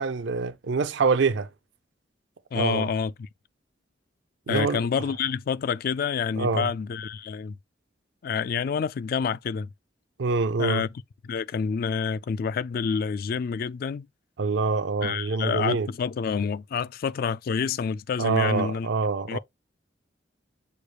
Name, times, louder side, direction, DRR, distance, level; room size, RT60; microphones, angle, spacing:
voice 1, 0.0-1.5 2.6-2.9 4.5-4.9 6.4-6.7 10.2-10.8 14.4-15.9 18.2-19.4, right 4 dB, 70° right, 0.5 m, -25 dB
voice 2, 2.5-3.3 4.5-7.5 8.2-9.7 10.6-10.9 11.2-14.1 15.0-18.9 19.3-19.4, left 6 dB, 50° left, 0.3 m, -28 dB
6.4 x 2.4 x 3.1 m
head